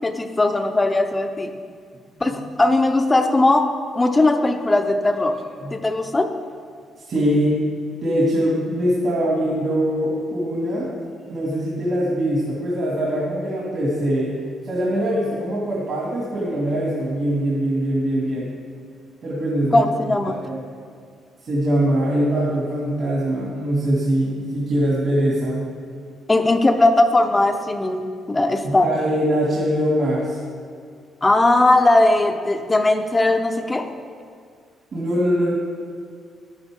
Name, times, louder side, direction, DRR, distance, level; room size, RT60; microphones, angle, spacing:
voice 1, 0.0-1.5 2.2-5.4 5.7-6.3 19.7-20.3 26.3-28.9 31.2-33.9, left 2 dB, 20° left, 6 dB, 0.7 m, -18 dB
voice 2, 7.0-7.5 8.0-10.9 11.3-14.3 14.6-18.5 19.2-19.8 20.4-20.6 21.4-25.7 28.6-30.4 34.9-35.5, equal, 55° right, -5 dB, 2.4 m, -22 dB
11.0 x 10.0 x 3.7 m, 2.1 s
cardioid pair, 90°, 0 cm